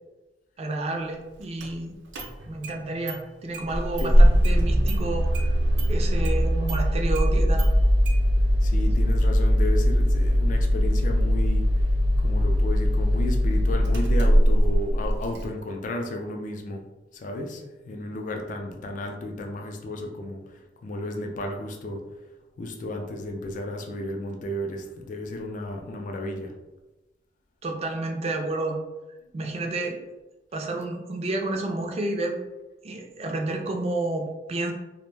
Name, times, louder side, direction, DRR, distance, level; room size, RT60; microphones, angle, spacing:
voice 1, 0.6-2.0 2.5-5.5 5.9-7.7 27.6-28.8 29.3-30.0 30.5-32.4 32.8-34.7, right 2 dB, 35° right, 3 dB, 0.4 m, -30 dB
Engine starting, 1.6-1.7 2.1-2.8 3.1-3.2 3.5-15.4, equal, 90° right, 0.5 m, -21 dB
voice 2, 8.6-11.6 12.2-16.8 17.1-20.4 20.8-22.0 22.6-26.5, left 1 dB, 45° left, 3 dB, 0.3 m, -33 dB
2.5 x 2.1 x 3.1 m, 1.1 s
head